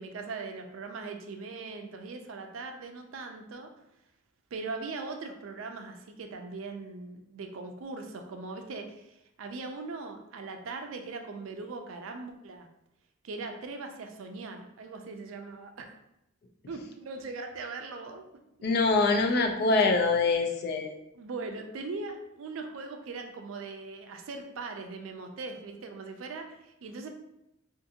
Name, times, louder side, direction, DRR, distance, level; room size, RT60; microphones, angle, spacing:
voice 1, 0.0-3.7 4.5-12.7 13.2-15.9 16.7-18.2 19.0-19.2 21.1-27.1, right 3 dB, 75° right, 4 dB, 0.4 m, -40 dB
voice 2, 18.6-20.9, left 3 dB, 50° left, 4 dB, 0.3 m, -24 dB
2.5 x 2.5 x 2.7 m, 0.84 s
head